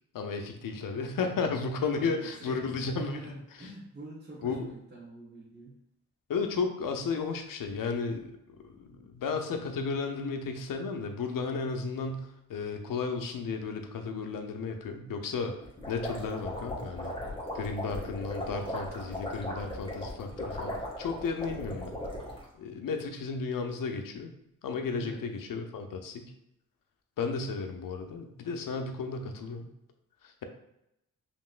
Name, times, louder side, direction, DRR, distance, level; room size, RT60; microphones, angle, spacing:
voice 1, 0.1-3.2 4.4-4.7 6.3-8.3 8.6-15.5 15.9-17.1 17.5-22.0 22.6-24.3 24.6-26.3 27.2-29.7 30.2-30.4, left 4 dB, 70° left, 5 dB, 0.7 m, -33 dB
voice 2, 2.0-5.7 25.0-25.3, right 1 dB, 30° right, -6 dB, 1.1 m, -44 dB
sound 1, 15.6-22.5, left 1 dB, 15° left, 1.4 m, -38 dB
5.2 x 3.0 x 2.5 m, 0.83 s
cardioid pair, 60°, 34 cm